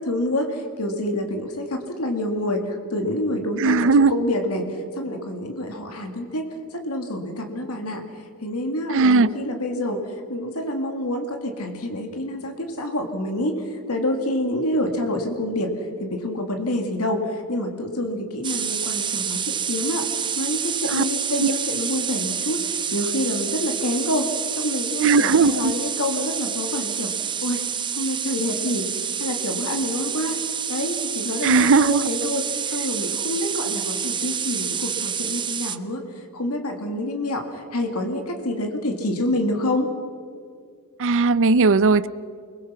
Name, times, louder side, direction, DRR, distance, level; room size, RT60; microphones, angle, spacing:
voice 1, 0.0-8.0 8.4-27.1 27.4-27.6 27.9-28.9 29.2-30.4 30.7-39.9, left 1 dB, 80° left, 2.4 m, -27 dB
voice 2, 3.6-4.1 8.9-9.3 20.9-21.0 21.4-21.5 25.0-25.7 31.4-32.0 41.0-42.1, right 4 dB, 60° right, 0.6 m, -17 dB
sound 1, 18.4-35.8, right 7 dB, 20° right, 0.7 m, -28 dB
29.5 x 20.5 x 5.8 m
head